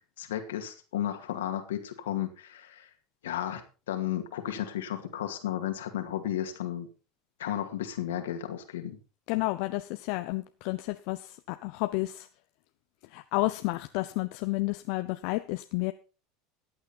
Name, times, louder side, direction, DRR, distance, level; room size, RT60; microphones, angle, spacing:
voice 1, 0.2-2.9 3.2-6.9 7.4-9.0, left 11 dB, 85° left, 6 dB, 2.2 m, -33 dB
voice 2, 9.3-12.3 13.1-15.9, left 21 dB, 65° left, 10 dB, 0.7 m, -31 dB
14.5 x 8.9 x 4.3 m, 0.34 s
hypercardioid pair, 90°, 0 cm